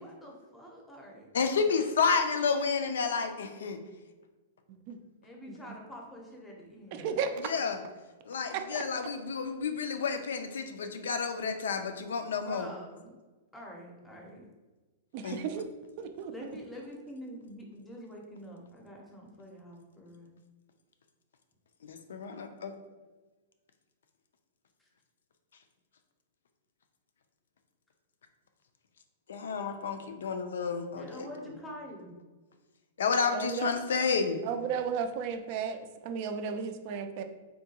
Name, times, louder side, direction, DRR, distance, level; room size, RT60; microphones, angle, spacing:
voice 1, 0.0-1.6 5.2-7.3 12.4-13.1 13.5-14.5 16.3-20.3 30.9-32.2, equal, 10° left, -1 dB, 0.6 m, -46 dB
voice 2, 1.3-3.8 7.4-7.8 8.3-12.7 15.2-15.4 21.8-22.7 29.3-31.3 33.0-34.4, left 5 dB, 85° left, 7 dB, 0.4 m, -30 dB
voice 3, 6.9-7.3 8.7-8.8 15.1-15.6 16.0-16.3 33.3-33.7 34.4-37.2, right 7 dB, 45° right, 7 dB, 0.3 m, -34 dB
3.7 x 2.2 x 2.8 m, 1.2 s
hypercardioid pair, 145°, 0 cm